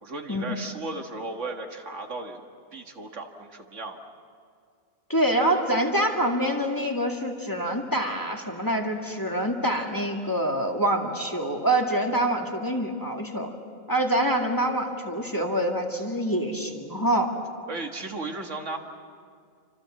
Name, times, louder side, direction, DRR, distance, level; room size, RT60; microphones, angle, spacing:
voice 1, 0.0-2.4 2.7-4.0 17.7-18.8, right 3 dB, 65° right, 4 dB, 2.0 m, -35 dB
voice 2, 5.1-13.5 13.9-17.3, right 1 dB, 15° left, 1 dB, 2.1 m, -26 dB
28.5 x 26.0 x 7.6 m, 2.2 s
omnidirectional pair, 1.4 m